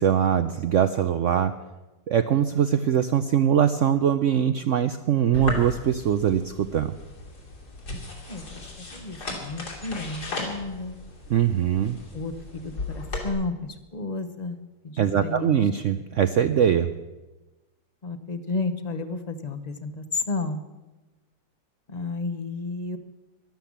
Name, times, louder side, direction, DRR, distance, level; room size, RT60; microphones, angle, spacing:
voice 1, 0.0-1.6 2.1-6.9 11.3-12.0 15.0-16.9, right 9 dB, 70° right, 10 dB, 0.7 m, -22 dB
sound 1, 5.3-13.3, left 2 dB, 65° left, 3.6 m, -36 dB
voice 2, 8.8-11.0 12.1-14.6 14.8-15.6 18.0-20.6 21.9-23.0, left 3 dB, 35° left, 10 dB, 0.7 m, -32 dB
13.5 x 12.0 x 7.3 m, 1.1 s
omnidirectional pair, 1.9 m